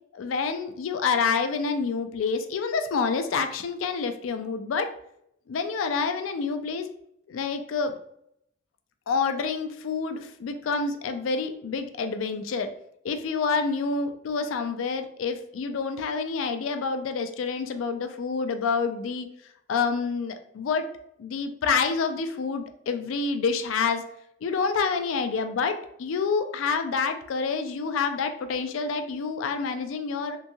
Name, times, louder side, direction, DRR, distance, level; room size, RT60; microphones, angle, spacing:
voice 1, 0.1-4.9 5.5-6.9 7.3-7.9 9.1-12.7 13.0-19.3 19.7-20.9 21.2-24.0 24.4-25.7 26.0-30.4, left 5 dB, 85° left, 8 dB, 0.3 m, -28 dB
2.8 x 2.6 x 2.3 m, 0.73 s
head